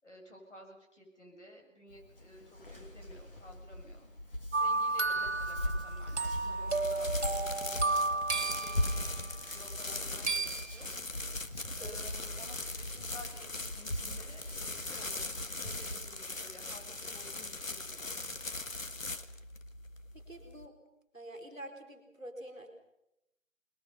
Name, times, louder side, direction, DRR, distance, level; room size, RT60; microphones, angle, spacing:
voice 1, 0.0-4.1 4.6-9.1 9.5-10.9 11.8-18.1, left 1 dB, 65° left, 0 dB, 7.6 m, -54 dB
Hands, 1.9-15.9, equal, 45° left, 2.9 m, -40 dB
sound 1, 4.5-9.3 10.3-10.8, right 3 dB, 55° right, 1.7 m, -32 dB
sound 2, 6.7-20.7, left 2 dB, 90° left, 1.6 m, -41 dB
voice 2, 20.1-20.7 21.1-22.7, right 1 dB, 5° left, -14 dB, 1.5 m, -47 dB
28.0 x 21.0 x 5.7 m, 0.85 s
figure-of-eight pair, 170°, 39 cm